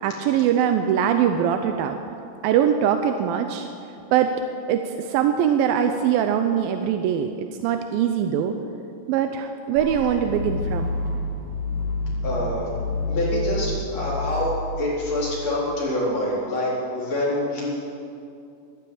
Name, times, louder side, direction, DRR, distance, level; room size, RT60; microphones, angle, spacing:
voice 1, 0.0-2.0 2.4-3.7 4.1-4.3 4.7-8.6 9.1-10.9, right 9 dB, 85° right, 6 dB, 2.5 m, -22 dB
sound 1, 9.8-15.7, left 2 dB, 70° right, 3.8 m, -29 dB
voice 2, 12.2-12.7 13.1-17.7, left 1 dB, 45° left, -6 dB, 5.1 m, -26 dB
12.5 x 12.0 x 8.7 m, 2.5 s
omnidirectional pair, 4.1 m